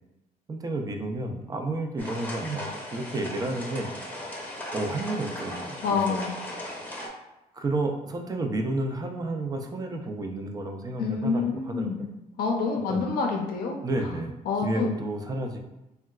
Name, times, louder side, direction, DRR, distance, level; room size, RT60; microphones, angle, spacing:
voice 1, 0.5-3.9 4.7-6.2 7.5-12.1 12.9-13.1 13.8-14.3 14.6-15.6, right 2 dB, 25° right, 4 dB, 0.4 m, -31 dB
sound 1, 2.0-7.1, left 1 dB, 10° left, 0.7 m, -37 dB
voice 2, 5.8-6.3 11.0-12.0 12.4-13.8 14.5-14.9, left 5 dB, 75° left, 1 dB, 0.5 m, -27 dB
3.7 x 2.2 x 2.3 m, 0.94 s
cardioid pair, 125°, 15 cm